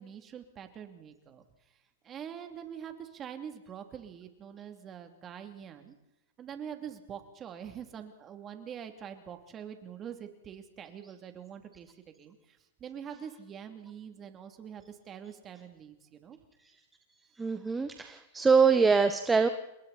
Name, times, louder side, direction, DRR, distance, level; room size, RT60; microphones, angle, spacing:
voice 1, 0.0-1.4 2.0-6.0 6.4-16.4, right 8 dB, 30° right, 6 dB, 2.7 m, -45 dB
voice 2, 17.4-19.5, right 5 dB, 10° right, 8 dB, 1.0 m, -24 dB
28.0 x 22.0 x 4.2 m, 0.94 s
hypercardioid pair, 125°, 0 cm